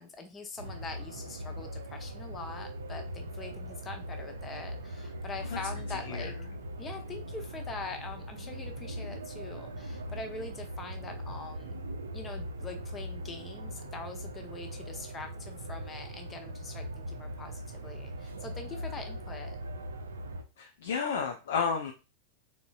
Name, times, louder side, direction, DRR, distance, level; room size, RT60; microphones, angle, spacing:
voice 1, 0.0-6.3 6.8-11.8 12.1-19.6, left 3 dB, 20° left, 5 dB, 0.8 m, -43 dB
sound 1, 0.6-20.4, equal, 70° right, 0.5 m, -40 dB
voice 2, 5.9-6.3 8.4-8.6 20.6-21.9, left 6 dB, 60° left, 4 dB, 0.5 m, -32 dB
4.0 x 3.5 x 2.5 m, 0.29 s
figure-of-eight pair, 90°, 0 cm